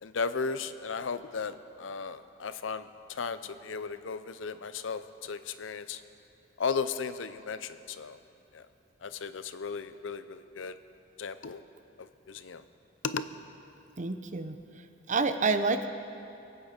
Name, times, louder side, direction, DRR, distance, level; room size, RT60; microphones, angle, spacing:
voice 1, 0.0-2.9 3.2-6.0 6.6-8.2 8.5-8.6 9.0-10.7 11.2-11.6 12.3-12.6 13.0-13.2, left 5 dB, 80° left, 12 dB, 0.6 m, -35 dB
voice 2, 14.0-15.9, right 4 dB, 40° right, 9 dB, 0.7 m, -29 dB
23.0 x 8.8 x 5.2 m, 2.7 s
head